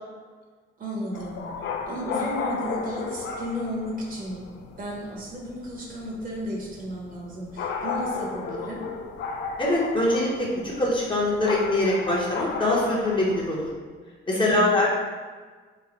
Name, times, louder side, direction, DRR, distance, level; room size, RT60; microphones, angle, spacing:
voice 1, 0.8-4.5 4.8-8.8 14.5-14.8, equal, 45° right, -3 dB, 1.0 m, -34 dB
sound 1, 1.1-13.7, left 5 dB, 65° left, 0.4 m, -34 dB
voice 2, 9.6-13.7 14.3-14.9, left 1 dB, 25° left, -5 dB, 0.9 m, -23 dB
3.2 x 2.1 x 3.9 m, 1.5 s
cardioid pair, 90°, 20 cm